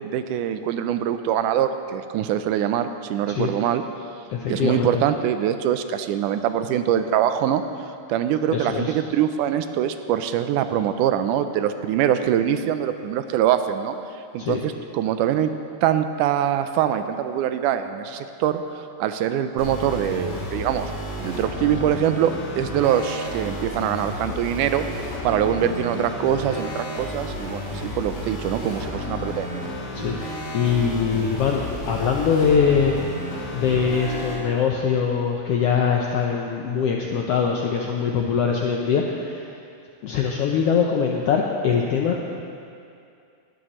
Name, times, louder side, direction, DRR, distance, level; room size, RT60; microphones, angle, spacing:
voice 1, 0.0-3.8 4.5-7.6 8.1-14.0 14.3-15.5 15.8-18.6 19.0-20.9 21.2-24.9 25.2-29.7, right 10 dB, 85° right, 9 dB, 2.1 m, -23 dB
voice 2, 4.3-5.0 8.5-9.0 14.4-14.6 29.9-30.2 30.5-32.9 33.5-39.4 40.0-42.4, left 6 dB, 85° left, 0 dB, 1.3 m, -22 dB
sound 1, 19.6-34.4, left 1 dB, 65° left, 3.5 m, -32 dB
19.5 x 11.0 x 3.0 m, 2.5 s
omnidirectional pair, 3.6 m